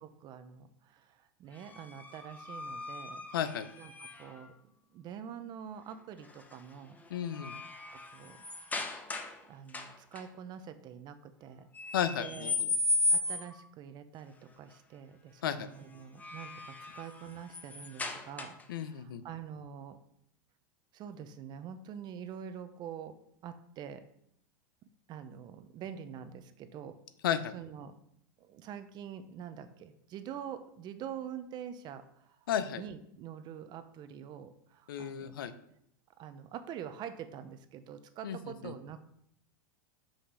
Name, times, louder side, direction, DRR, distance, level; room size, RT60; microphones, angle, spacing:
voice 1, 0.0-3.3 3.8-3.9 4.2-4.5 4.9-7.0 7.9-8.4 9.5-12.6 13.1-20.0 20.9-23.2 23.4-24.1 25.1-27.0 27.5-28.0 28.4-32.4 32.7-35.4 36.2-39.0, right 8 dB, 40° right, 10 dB, 0.8 m, -45 dB
sound 1, 1.6-4.5 6.2-6.6 7.0-9.4 9.7-10.2 11.7-13.6 15.9-18.8, left 2 dB, 15° left, 0.9 m, -36 dB
voice 2, 3.3-3.7 7.1-7.5 11.9-12.7 15.4-15.7 18.7-19.2 27.2-27.5 32.5-32.8 34.9-35.5 38.2-38.7, left 9 dB, 85° left, 12 dB, 0.7 m, -33 dB
5.8 x 5.6 x 5.6 m, 0.71 s
hypercardioid pair, 120°, 11 cm